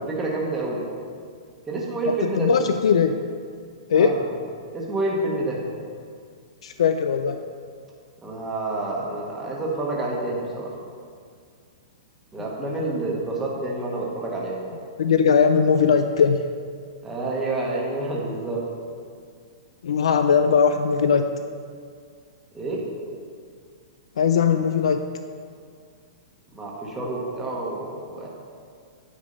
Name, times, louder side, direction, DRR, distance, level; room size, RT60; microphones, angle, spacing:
voice 1, 0.1-0.8 1.7-2.7 3.9-4.2 4.7-5.6 8.2-10.7 12.3-14.6 17.0-18.7 22.5-22.9 26.5-28.3, right 2 dB, 10° right, -4 dB, 1.2 m, -28 dB
voice 2, 2.1-3.2 3.9-4.2 6.6-7.4 12.6-12.8 15.0-16.4 19.8-21.2 24.2-25.0, left 6 dB, 85° left, 8 dB, 0.4 m, -19 dB
8.5 x 5.2 x 5.3 m, 2.1 s
hypercardioid pair, 160°, 3 cm